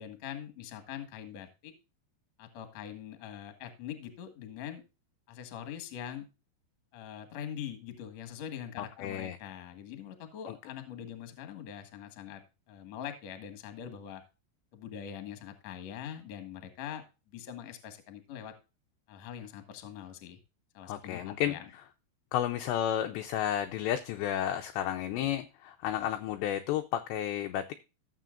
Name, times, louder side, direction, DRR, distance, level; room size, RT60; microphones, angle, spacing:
voice 1, 0.0-1.7 2.4-4.8 5.3-6.3 6.9-12.4 12.7-14.2 14.7-17.0 17.3-18.5 19.1-20.4 20.7-21.6, left 9 dB, 60° left, 7 dB, 1.8 m, -43 dB
voice 2, 8.8-9.4 10.5-10.6 20.8-21.6 22.3-27.7, left 11 dB, 85° left, 7 dB, 2.5 m, -32 dB
15.0 x 7.5 x 2.5 m, 0.28 s
omnidirectional pair, 5.7 m